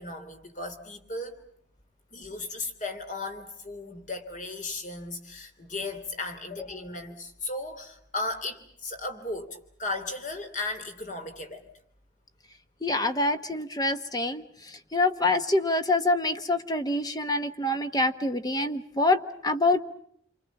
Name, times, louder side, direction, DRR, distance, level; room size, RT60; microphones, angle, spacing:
voice 1, 0.0-1.4 2.1-11.7, left 2 dB, 40° left, 6 dB, 3.2 m, -36 dB
voice 2, 12.8-19.8, left 2 dB, 20° left, 9 dB, 1.1 m, -26 dB
29.0 x 24.0 x 7.2 m, 0.69 s
head